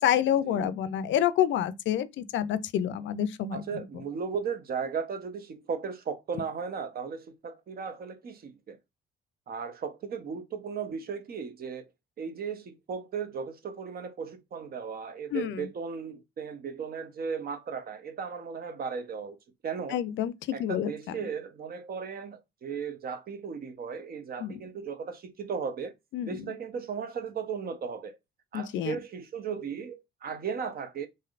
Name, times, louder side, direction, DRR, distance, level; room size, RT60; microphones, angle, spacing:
voice 1, 0.0-3.8 15.3-15.7 19.9-20.3 20.6-21.1 24.4-24.5 26.1-26.5 28.5-29.0, left 10 dB, 70° left, 0.4 m, -28 dB
voice 2, 3.5-8.8 9.5-11.9 12.2-19.4 19.6-20.0 20.5-25.9 26.3-28.2 28.5-31.1, right 6 dB, 50° right, 0.6 m, -36 dB
3.2 x 2.6 x 2.4 m
cardioid pair, 90°, 20 cm